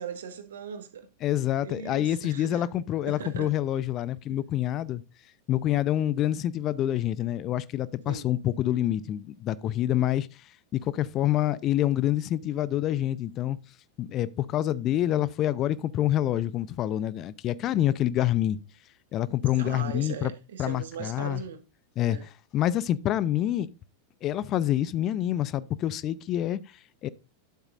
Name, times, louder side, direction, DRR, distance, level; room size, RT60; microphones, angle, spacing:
voice 1, 0.0-1.1 1.6-2.6 3.1-3.5 4.3-4.4 8.1-8.3 19.6-21.6 22.1-22.2, right 7 dB, 60° right, 1.6 m, -39 dB
voice 2, 1.2-5.0 5.5-13.6 14.0-18.6 19.1-20.3 20.6-21.4 22.0-23.7 24.2-27.1, left 12 dB, 35° left, 0.6 m, -27 dB
12.0 x 8.1 x 2.5 m
figure-of-eight pair, 90°, 0 cm